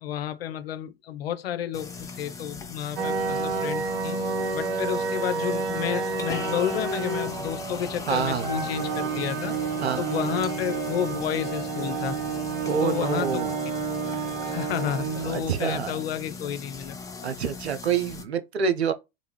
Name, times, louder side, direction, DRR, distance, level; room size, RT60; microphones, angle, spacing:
voice 1, 0.0-4.2 4.5-9.6 10.0-12.2 12.8-13.6 14.4-17.0, left 10 dB, 70° left, 0.5 m, -31 dB
sound 1, 1.7-18.2, left 4 dB, 10° left, 0.4 m, -40 dB
sound 2, 3.0-16.0, right 4 dB, 50° right, 0.9 m, -30 dB
voice 2, 8.1-8.5 9.8-10.0 12.6-13.5 14.2-14.4 15.2-15.9 17.2-18.9, right 7 dB, 85° right, 0.5 m, -27 dB
2.5 x 2.3 x 3.1 m
figure-of-eight pair, 80°, 31 cm